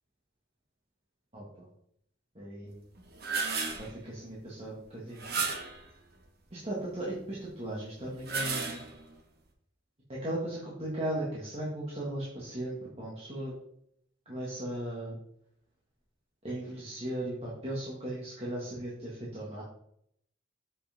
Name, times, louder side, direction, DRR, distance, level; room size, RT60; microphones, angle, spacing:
voice 1, 1.3-1.7 2.4-2.9 3.8-5.5 6.5-8.8 10.1-13.5 14.3-15.2 16.4-19.6, right 1 dB, 30° right, -6 dB, 2.0 m, -37 dB
sound 1, 3.0-3.9 5.2-5.8 8.1-9.1, right 4 dB, 55° right, 1.4 m, -33 dB
7.6 x 6.7 x 3.6 m, 0.69 s
head